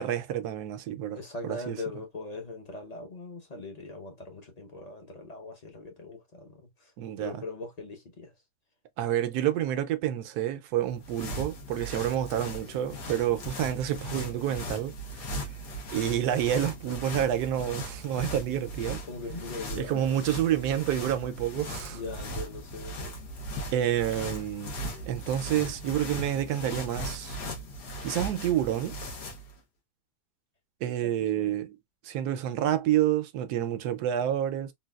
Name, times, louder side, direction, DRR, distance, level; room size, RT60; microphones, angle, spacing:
voice 1, 0.0-1.2 1.4-1.8 7.0-7.4 9.0-14.9 15.2-15.3 15.9-19.0 19.7-22.0 23.7-27.4 28.0-29.0 30.8-31.8 32.0-34.7, right 11 dB, 75° right, 1.1 m, -29 dB
voice 2, 1.1-6.9 7.2-8.3 19.1-20.2 21.9-23.1 31.0-31.5, left 3 dB, 40° left, 0.6 m, -41 dB
sound 1, 10.8-29.5, equal, 85° left, 1.6 m, -38 dB
3.9 x 2.3 x 2.3 m
omnidirectional pair, 1.7 m